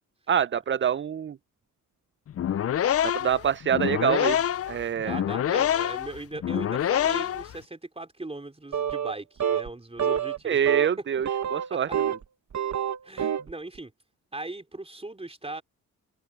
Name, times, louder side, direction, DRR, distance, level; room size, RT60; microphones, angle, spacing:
voice 1, 0.3-1.4 3.0-4.4 4.7-5.2 10.4-12.2, right 8 dB, 35° right, 0.5 m, -26 dB
sound 1, 2.3-7.6, left 10 dB, 40° left, 0.5 m, -26 dB
voice 2, 5.0-10.6 11.7-12.0 13.0-13.9 14.3-15.6, right 2 dB, 15° right, 3.8 m, -38 dB
sound 2, 8.7-9.2 9.4-9.7 10.0-10.4 10.7-10.9 11.3-12.2 12.5-13.5, right 8 dB, 50° right, 1.4 m, -27 dB
open air
supercardioid pair, 55°, 35 cm